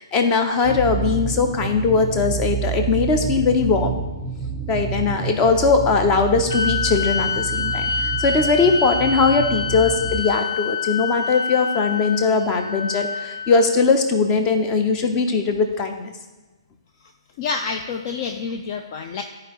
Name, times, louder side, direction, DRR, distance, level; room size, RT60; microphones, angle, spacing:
voice 1, 0.0-3.9 4.7-16.1, left 4 dB, 25° left, 5 dB, 0.9 m, -20 dB
sound 1, 0.6-10.2, right 6 dB, 5° right, 0.7 m, -29 dB
sound 2, 6.5-14.0, left 5 dB, 75° left, 0.9 m, -27 dB
voice 2, 17.4-19.2, left 5 dB, 40° left, 5 dB, 0.5 m, -28 dB
12.5 x 4.8 x 3.1 m, 1.2 s
figure-of-eight pair, 125°, 3 cm